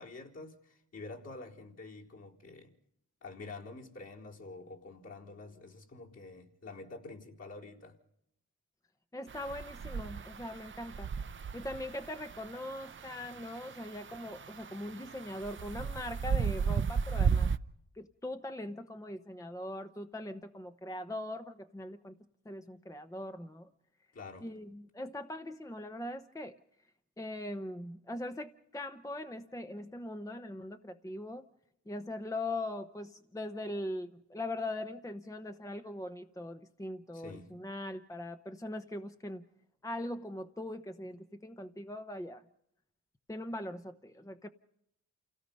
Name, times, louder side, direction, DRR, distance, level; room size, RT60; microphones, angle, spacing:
voice 1, 0.0-2.7 3.2-8.0 9.8-9.9 24.1-24.5 37.1-37.5, left 3 dB, 55° left, 4.2 m, -48 dB
voice 2, 9.1-11.1 11.5-17.5 17.9-22.1 22.4-23.7 24.4-26.6 27.2-31.5 31.9-39.5 39.8-42.4 43.3-44.5, left 1 dB, 10° left, 0.9 m, -41 dB
sound 1, 9.3-17.6, right 6 dB, 40° right, 0.7 m, -35 dB
29.0 x 17.0 x 5.4 m
cardioid pair, 80°, 31 cm